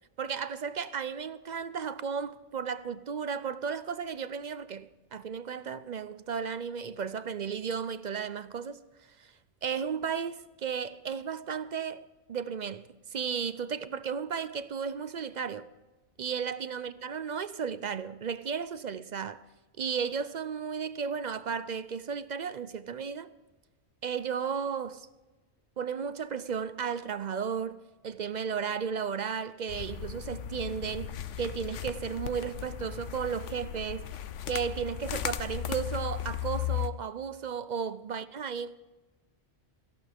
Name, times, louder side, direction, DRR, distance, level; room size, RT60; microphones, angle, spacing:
voice 1, 0.2-8.8 9.2-9.3 9.6-12.0 12.3-12.8 13.1-15.7 16.2-19.4 19.8-23.3 24.0-25.1 25.8-31.1 31.4-34.1 34.5-38.8, right 6 dB, 50° right, 0.5 m, -34 dB
sound 1, 29.7-36.9, left 11 dB, 85° left, 1.1 m, -36 dB
18.0 x 15.0 x 3.6 m
omnidirectional pair, 1.2 m